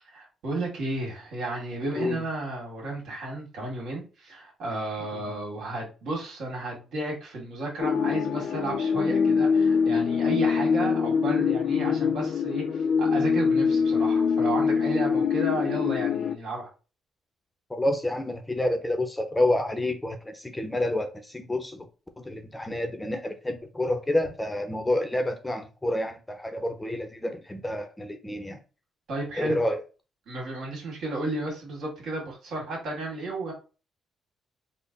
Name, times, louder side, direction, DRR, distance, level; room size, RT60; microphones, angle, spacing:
voice 1, 0.1-16.7 29.1-29.6 30.3-33.5, right 2 dB, 75° right, 1.9 m, -33 dB
sound 1, 7.8-16.3, left 6 dB, 65° left, 0.4 m, -24 dB
voice 2, 17.7-21.9 22.2-28.6 29.4-29.8, left 1 dB, 10° left, 0.6 m, -28 dB
3.7 x 2.1 x 3.9 m
cardioid pair, 90°, 0 cm